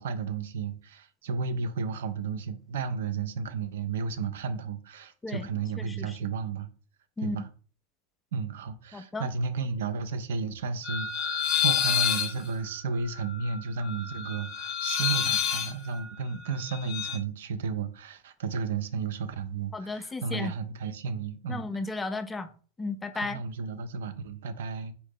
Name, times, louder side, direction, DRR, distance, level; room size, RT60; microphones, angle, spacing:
voice 1, 0.0-6.7 7.2-7.5 8.3-21.7 23.1-24.9, right 5 dB, 60° right, 0.4 m, -33 dB
voice 2, 5.8-6.2 7.2-7.5 8.9-9.3 19.7-20.5 21.5-22.5 22.8-23.4, left 3 dB, 10° left, 0.4 m, -34 dB
sound 1, 10.8-17.2, left 9 dB, 35° left, 0.7 m, -29 dB
4.0 x 2.7 x 3.6 m
figure-of-eight pair, 90°, 0 cm